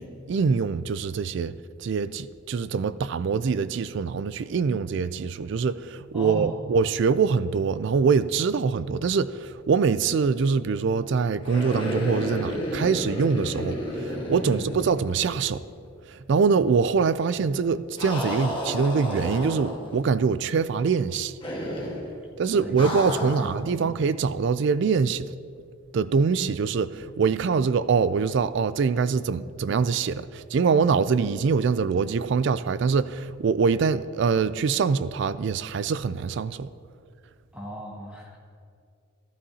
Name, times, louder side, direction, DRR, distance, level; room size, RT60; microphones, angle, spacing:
voice 1, 0.0-1.5 1.8-15.6 16.1-21.4 22.4-25.3 25.9-36.7, right 5 dB, 55° right, 0.3 m, -24 dB
voice 2, 6.1-6.6 14.4-14.8 22.5-23.9 37.5-38.4, equal, 5° right, 2.0 m, -38 dB
sound 1, 11.4-15.6 15.8-15.9 18.0-20.0 21.4-22.1 22.8-23.6, equal, 25° left, 1.5 m, -31 dB
14.5 x 12.5 x 2.8 m
head